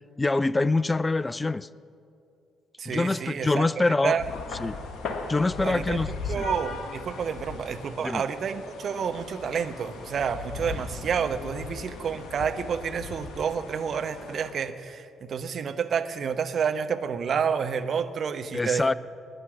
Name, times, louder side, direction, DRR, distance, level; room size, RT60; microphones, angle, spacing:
voice 1, 0.2-1.7 2.9-4.2 4.6-4.8 5.3-6.4 8.0-8.2 18.5-18.9, left 2 dB, 20° left, 19 dB, 0.4 m, -25 dB
voice 2, 2.8-4.2 5.6-18.8, right 7 dB, 50° right, 9 dB, 0.9 m, -29 dB
sound 1, 4.2-14.5, left 4 dB, 55° left, 1.8 m, -38 dB
19.5 x 10.0 x 7.2 m, 2.5 s
figure-of-eight pair, 45°, 0 cm